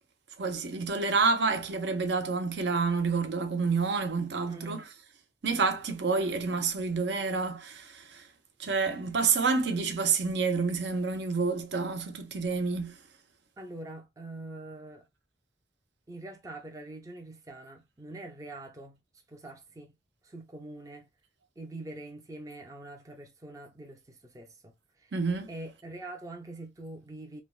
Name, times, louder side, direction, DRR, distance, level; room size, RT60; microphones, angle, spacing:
voice 1, 0.4-4.9 5.4-8.3 8.6-13.0 25.1-25.5, right 4 dB, 65° right, 0.6 m, -28 dB
voice 2, 4.5-4.8 13.6-15.1 16.1-19.0 19.3-19.9 20.2-21.1 21.6-25.1 25.5-27.4, right 2 dB, 20° right, 0.4 m, -44 dB
3.3 x 2.1 x 2.3 m
head